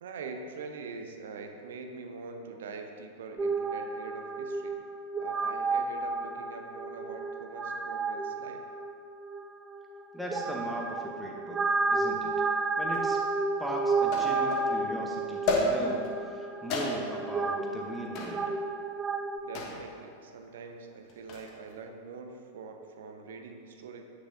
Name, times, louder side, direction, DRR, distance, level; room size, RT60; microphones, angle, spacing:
voice 1, 0.0-4.8 5.2-8.6 19.4-24.0, right 4 dB, 60° right, 4 dB, 0.6 m, -44 dB
sound 1, 3.4-19.4, right 3 dB, 20° right, 0.4 m, -32 dB
voice 2, 10.1-12.3 12.8-13.2 13.6-16.0 16.3-18.5, equal, ahead, -2 dB, 1.0 m, -38 dB
sound 2, 12.9-13.0 14.1-14.7 15.5-16.1 16.7-17.3 18.1-18.4 19.5-19.9 21.1-21.5, left 2 dB, 40° left, 1.1 m, -30 dB
8.2 x 6.4 x 2.7 m, 2.4 s
figure-of-eight pair, 90°, 0 cm